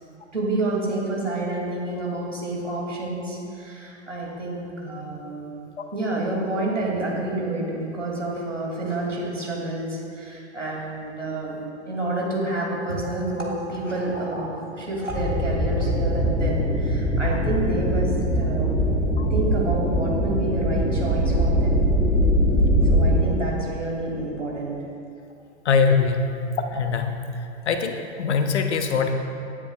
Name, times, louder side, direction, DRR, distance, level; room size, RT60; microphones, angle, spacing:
voice 1, 0.3-5.6 5.9-18.9 19.3-21.9 22.9-24.8, right 2 dB, 90° right, -3 dB, 2.4 m, -29 dB
sound 1, 15.1-23.2, equal, 5° right, 2.3 m, -22 dB
voice 2, 25.7-26.3 26.7-27.1 27.7-29.1, left 5 dB, 65° left, 6 dB, 1.0 m, -22 dB
16.5 x 9.9 x 2.3 m, 2.7 s
figure-of-eight pair, 95°, 36 cm